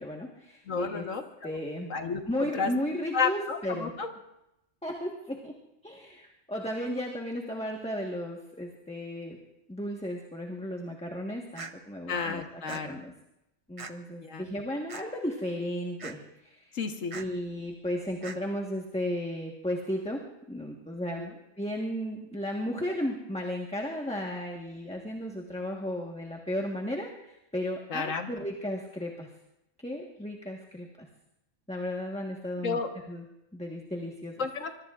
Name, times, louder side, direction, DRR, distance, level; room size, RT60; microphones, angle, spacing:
voice 1, 0.0-1.0 1.4-1.9 2.3-3.9 4.8-5.5 5.8-9.4 9.7-13.1 13.7-16.8 17.1-20.2 20.5-21.3 21.6-29.3 29.8-31.1 31.7-32.8 33.1-33.3 33.5-34.3, equal, 5° left, 0 dB, 1.3 m, -34 dB
voice 2, 0.7-1.6 1.9-2.2 2.6-2.7 3.1-4.1 12.1-13.0 14.2-14.5 16.7-17.2 21.2-21.3 27.9-28.3 32.6-32.9 34.4-34.7, left 5 dB, 80° left, 5 dB, 1.7 m, -31 dB
sound 1, 11.6-11.7 12.7-12.8 13.8-13.9 14.9-15.0 16.0-16.2 17.1-17.3 18.2-18.4, right 4 dB, 30° right, 0.8 m, -40 dB
25.0 x 22.0 x 2.5 m, 0.88 s
omnidirectional pair, 1.3 m